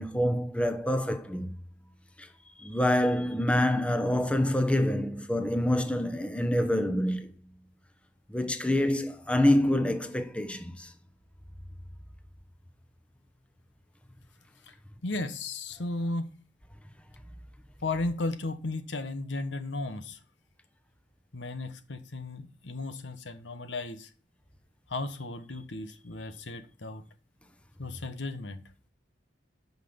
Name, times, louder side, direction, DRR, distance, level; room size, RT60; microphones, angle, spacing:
voice 1, 0.0-1.5 2.2-2.3 2.6-7.3 8.3-10.9, left 1 dB, 5° left, 0.9 m, -26 dB
voice 2, 15.0-16.3 17.8-20.2 21.3-24.1 24.9-27.0 27.8-28.6, left 2 dB, 85° left, 1.2 m, -35 dB
9.3 x 5.8 x 7.0 m
head